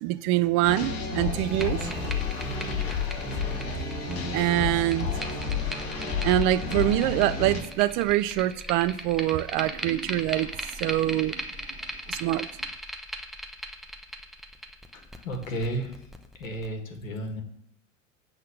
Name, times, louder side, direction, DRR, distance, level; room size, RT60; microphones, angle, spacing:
voice 1, 0.0-2.2 4.3-5.4 6.2-10.5 10.8-11.4 12.1-12.5, right 15 dB, 45° right, 0.4 m, -25 dB
sound 1, 0.6-7.6, left 5 dB, 40° left, 2.7 m, -30 dB
sound 2, 1.4-16.7, equal, ahead, 0.8 m, -39 dB
voice 2, 14.9-16.0 16.4-17.4, right 1 dB, 80° left, 1.8 m, -33 dB
8.3 x 4.0 x 6.9 m
hypercardioid pair, 90°, 40 cm